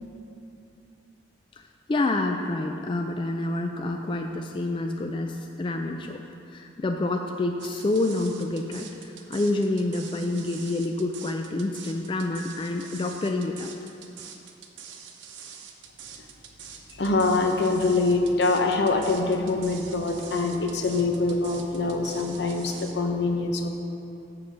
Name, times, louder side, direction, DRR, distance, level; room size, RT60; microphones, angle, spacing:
voice 1, 1.9-6.2 6.5-13.7, left 2 dB, 25° left, 4 dB, 0.3 m, -28 dB
sound 1, 7.6-22.9, right 7 dB, 90° right, 0.9 m, -44 dB
voice 2, 16.9-23.7, left 3 dB, 70° left, 4 dB, 0.8 m, -24 dB
6.9 x 6.4 x 7.2 m, 2.7 s
head